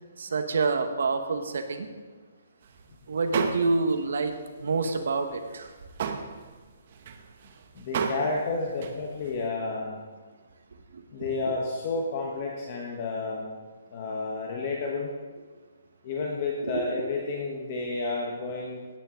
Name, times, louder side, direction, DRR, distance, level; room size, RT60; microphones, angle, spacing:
voice 1, 0.2-1.9 3.1-4.3 4.6-5.7 10.9-11.0 16.6-16.8, right 3 dB, 60° right, 6 dB, 1.3 m, -27 dB
sound 1, 2.7-2.9 3.2-4.0 4.3-4.4 4.8-9.5, right 6 dB, 30° right, 0.9 m, -34 dB
voice 2, 7.8-10.0 11.1-13.5 13.9-15.1 16.0-18.8, left 3 dB, 25° left, -1 dB, 1.2 m, -31 dB
17.0 x 9.4 x 3.9 m, 1.4 s
hypercardioid pair, 180°, 0 cm